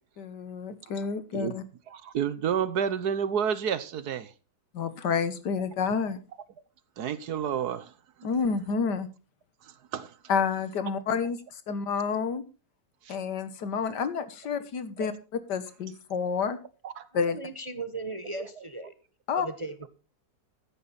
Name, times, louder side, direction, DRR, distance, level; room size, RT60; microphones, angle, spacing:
voice 1, 0.2-1.6 4.7-6.2 8.2-9.1 10.3-11.4 11.7-12.4 13.1-15.1 15.5-16.6 17.1-17.4 19.3-19.5, left 6 dB, 70° left, 1.9 m, -29 dB
voice 2, 1.9-4.3 7.0-7.9 9.9-10.1 13.1-13.2 15.0-15.1 16.8-17.1 18.4-18.5, right 8 dB, 65° right, 1.4 m, -30 dB
voice 3, 17.3-18.9 19.3-19.9, right 2 dB, 30° right, 0.6 m, -37 dB
14.0 x 10.5 x 4.1 m
omnidirectional pair, 1.9 m